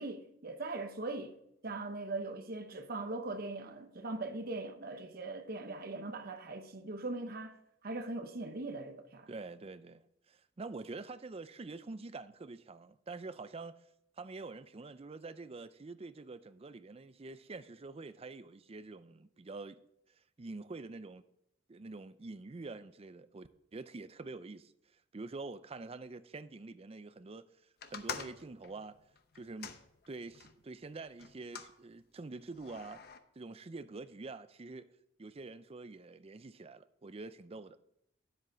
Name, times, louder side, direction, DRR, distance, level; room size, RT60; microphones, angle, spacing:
voice 1, 0.0-1.3 1.6-7.6 7.8-9.3, right 2 dB, 55° right, 0.9 m, -40 dB
voice 2, 9.3-13.8 14.2-19.8 20.4-21.3 21.7-27.5 27.9-29.0 29.3-29.7 30.1-33.0 33.4-34.9 35.2-37.8, right 3 dB, 30° right, 0.5 m, -46 dB
sound 1, 27.8-30.6 31.2-31.8 32.5-33.2, left 6 dB, 55° left, 0.8 m, -46 dB
10.0 x 7.7 x 4.6 m
head